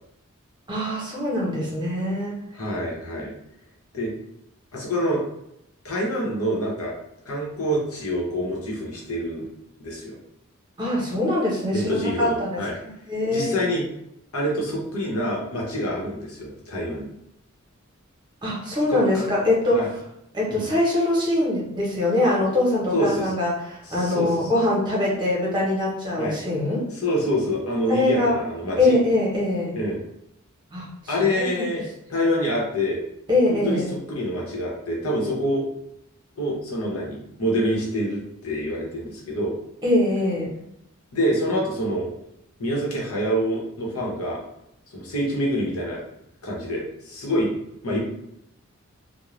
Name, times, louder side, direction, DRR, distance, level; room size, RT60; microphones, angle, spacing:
voice 1, 0.7-2.4 10.8-11.9 12.2-12.6 13.1-13.6 18.4-19.8 20.3-26.8 27.9-28.4 28.8-29.7 30.7-31.7 33.3-33.9 39.8-40.5, left 1 dB, 20° right, -6 dB, 0.9 m, -23 dB
voice 2, 2.6-3.3 3.9-4.1 4.7-5.2 5.8-6.9 7.2-9.5 9.8-10.2 11.7-12.7 13.3-13.8 14.3-17.1 18.8-19.2 19.7-19.9 20.5-20.7 22.9-23.3 23.8-24.5 26.2-26.3 26.9-29.0 29.7-30.0 31.1-31.8 32.1-33.0 33.5-35.6 36.4-39.6 41.1-42.1 42.6-44.4 44.9-46.0 46.4-47.5 47.8-48.0, equal, 90° left, -4 dB, 0.9 m, -26 dB
2.5 x 2.2 x 3.1 m, 0.81 s
head